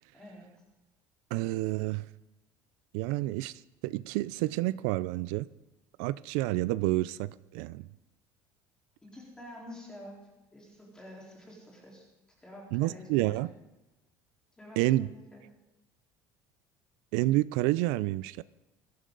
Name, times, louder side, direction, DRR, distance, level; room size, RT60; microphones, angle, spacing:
voice 1, 0.1-0.5 9.0-12.0 12.4-13.4 14.6-15.4, left 1 dB, 10° left, 4.1 m, -48 dB
voice 2, 1.3-2.0 2.9-5.5 6.0-7.8 12.7-13.5 14.8-15.1 17.1-18.4, right 17 dB, 90° right, 0.4 m, -29 dB
24.0 x 13.0 x 4.0 m
cardioid pair, 150°, 8 cm